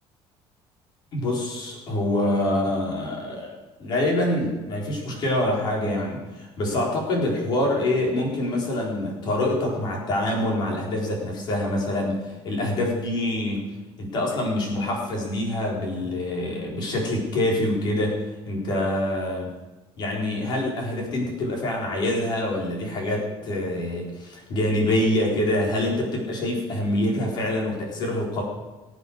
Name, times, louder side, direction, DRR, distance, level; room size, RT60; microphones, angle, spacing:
voice 1, 1.1-13.7 14.0-18.2 18.5-19.5 20.0-28.4, left 1 dB, 45° left, -1 dB, 4.5 m, -25 dB
20.5 x 8.1 x 6.5 m, 1.2 s
cardioid pair, 175°, 10 cm